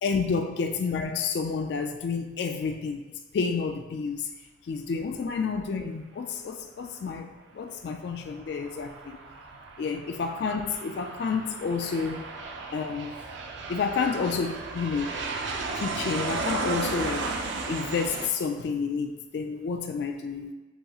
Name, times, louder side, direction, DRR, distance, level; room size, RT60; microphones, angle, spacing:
voice 1, 0.0-3.0 3.3-4.3 4.6-9.2 9.8-12.3 12.7-13.1 13.7-15.1 15.7-17.3 17.7-20.5, left 5 dB, 60° left, 5 dB, 0.3 m, -30 dB
Aircraft, 8.1-18.3, right 3 dB, 75° right, 0.5 m, -35 dB
7.8 x 2.9 x 2.3 m, 1.2 s
head